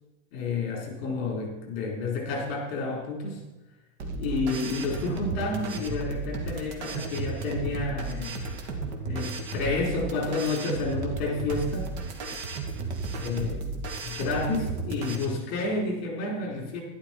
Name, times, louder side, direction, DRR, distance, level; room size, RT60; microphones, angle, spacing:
voice 1, 0.3-3.4 4.2-8.5 9.1-11.9 13.1-13.8 14.0-16.8, left 3 dB, 45° left, 0 dB, 4.0 m, -30 dB
sound 1, 4.0-15.2, right 3 dB, 50° right, 2.0 m, -34 dB
11.5 x 11.5 x 4.4 m, 1.0 s
supercardioid pair, 170°, 43 cm